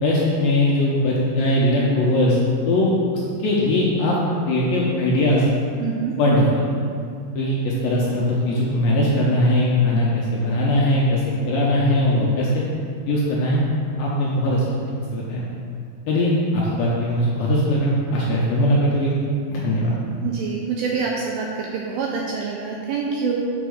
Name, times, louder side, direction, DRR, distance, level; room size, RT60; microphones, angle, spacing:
voice 1, 0.0-2.4 2.7-2.9 3.4-4.2 4.4-5.4 6.2-6.7 7.3-11.2 11.5-12.6 13.1-13.6 14.0-14.6 15.1-15.5 16.1-19.1 19.5-20.0, left 1 dB, 75° left, -5 dB, 2.2 m, -20 dB
voice 2, 5.8-6.1 20.2-23.5, right 5 dB, 80° right, -2 dB, 2.2 m, -26 dB
6.0 x 4.5 x 6.3 m, 2.3 s
omnidirectional pair, 4.8 m